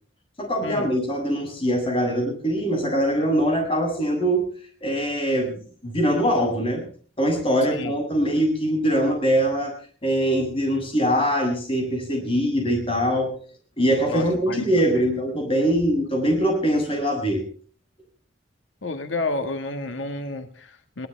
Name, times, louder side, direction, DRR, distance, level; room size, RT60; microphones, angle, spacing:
voice 1, 0.4-4.5 4.8-6.8 7.2-9.7 10.0-13.3 13.8-17.4, equal, 30° left, 3 dB, 7.8 m, -22 dB
voice 2, 14.1-14.6 14.9-15.0 18.8-21.1, left 2 dB, 90° left, 7 dB, 1.7 m, -30 dB
22.0 x 19.0 x 3.4 m, 0.44 s
head